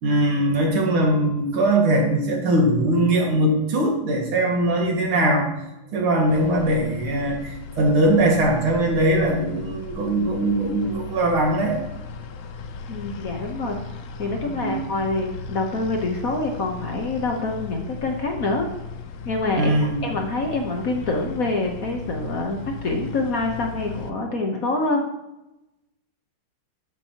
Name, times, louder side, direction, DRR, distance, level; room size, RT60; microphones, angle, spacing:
voice 1, 0.0-5.5 5.9-11.8 14.4-14.8 19.6-20.1, right 1 dB, 75° right, 0 dB, 2.8 m, -21 dB
sound 1, 6.3-24.1, left 4 dB, 85° left, 0.7 m, -37 dB
voice 2, 12.9-13.8 14.2-18.7 19.2-19.7 20.0-25.0, left 2 dB, 50° left, 2 dB, 1.3 m, -26 dB
13.0 x 7.4 x 2.9 m, 0.93 s
omnidirectional pair, 2.3 m